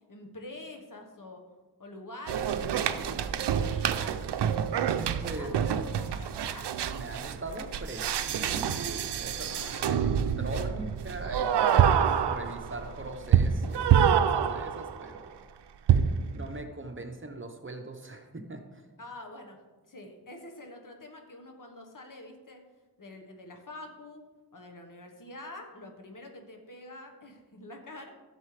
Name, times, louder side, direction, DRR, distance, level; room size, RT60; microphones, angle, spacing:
voice 1, 0.1-1.4 1.8-4.2 5.0-6.7 9.4-10.1 19.0-19.6 19.9-22.6 23.0-24.2 24.5-28.1, left 1 dB, 50° left, 3 dB, 1.4 m, -46 dB
sound 1, 2.3-15.1 15.9-16.3, right 8 dB, 85° right, 0.6 m, -27 dB
voice 2, 5.2-5.8 6.8-10.1 10.4-15.4 16.3-18.8, right 2 dB, 30° right, 4 dB, 1.1 m, -41 dB
12.0 x 7.6 x 3.3 m, 1.3 s
cardioid pair, 65°, 40 cm